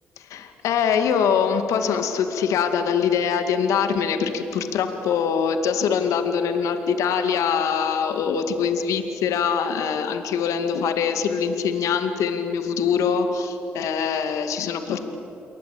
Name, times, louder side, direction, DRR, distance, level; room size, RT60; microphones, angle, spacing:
voice 1, 0.2-15.0, left 7 dB, 75° left, 7 dB, 2.2 m, -23 dB
28.5 x 23.0 x 8.5 m, 2.9 s
hypercardioid pair, 45°, 6 cm